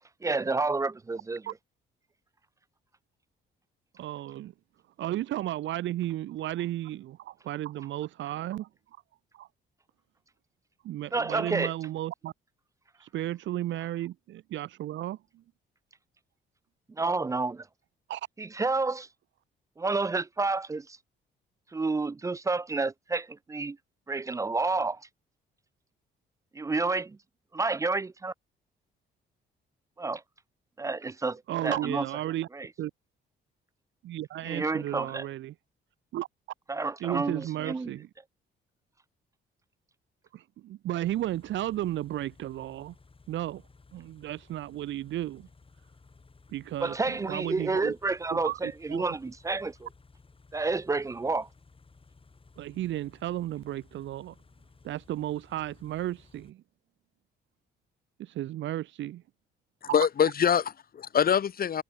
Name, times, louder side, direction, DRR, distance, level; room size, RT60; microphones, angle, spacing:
voice 1, 0.2-1.4 11.1-11.7 17.0-17.7 18.4-19.1 19.8-21.0 21.7-23.8 24.1-25.0 26.5-27.2 27.5-28.3 30.0-30.2 30.8-32.1 32.5-32.7 34.4-35.3 36.7-37.9 46.8-49.9 50.5-51.5, right 3 dB, 15° right, 0.3 m, -30 dB
voice 2, 4.0-4.5 5.0-8.7 9.3-9.5 10.8-12.3 13.0-15.4 18.1-18.2 31.5-32.5 32.8-32.9 34.0-35.5 36.1-36.3 37.0-38.1 40.3-42.9 43.3-43.6 43.9-45.5 46.5-47.9 48.3-49.0 52.6-54.4 54.8-56.6 58.2-59.2 59.9-60.1, right 14 dB, 70° right, 0.7 m, -34 dB
Car / Idling, 41.0-56.5, left 4 dB, 25° left, 7.3 m, -58 dB
voice 3, 59.8-61.8, left 8 dB, 50° left, 1.3 m, -24 dB
cardioid pair, 90°, 20 cm